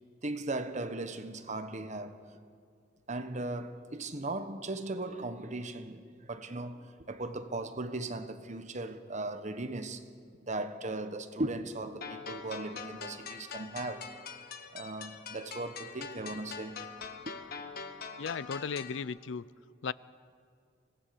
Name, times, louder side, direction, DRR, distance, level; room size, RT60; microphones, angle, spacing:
voice 1, 0.2-2.2 3.1-10.1 10.4-14.2 14.7-16.8 17.3-17.4, right 2 dB, 40° right, 1.3 m, -38 dB
sound 1, 12.0-19.0, left 5 dB, 55° left, 1.5 m, -44 dB
voice 2, 18.2-19.4 19.8-19.9, left 5 dB, 75° left, 0.5 m, -35 dB
25.0 x 18.0 x 6.9 m
head